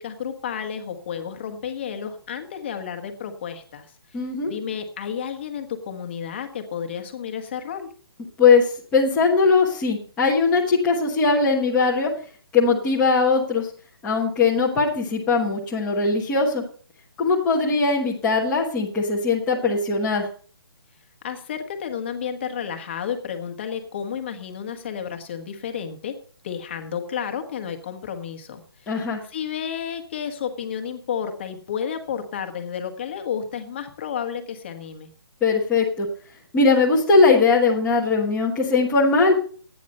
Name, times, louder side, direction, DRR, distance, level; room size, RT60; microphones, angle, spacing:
voice 1, 0.0-3.9 4.5-7.9 21.2-26.1 26.4-29.0 29.3-35.1, left 7 dB, 25° left, 6 dB, 1.4 m, -31 dB
voice 2, 4.1-4.5 8.4-12.1 12.5-13.7 14.0-16.6 17.2-20.3 28.9-29.2 35.4-36.1 36.5-39.4, left 4 dB, 10° left, -6 dB, 1.1 m, -20 dB
11.5 x 9.3 x 5.4 m, 0.43 s
hypercardioid pair, 175°, 13 cm